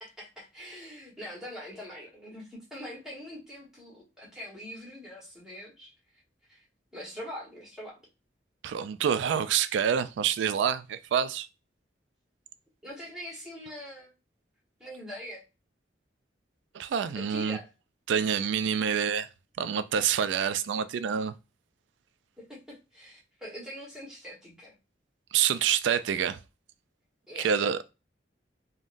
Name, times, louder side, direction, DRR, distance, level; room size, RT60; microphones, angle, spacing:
voice 1, 0.0-5.9 6.5-6.6 6.9-8.0 12.8-14.1 14.8-15.4 17.1-17.7 22.4-24.7 27.3-27.5, equal, 5° right, 1.2 m, -43 dB
voice 2, 8.6-11.5 16.7-17.6 18.1-19.3 19.6-21.3 25.3-26.4 27.4-27.9, right 8 dB, 80° right, 0.3 m, -27 dB
3.6 x 2.1 x 2.5 m
head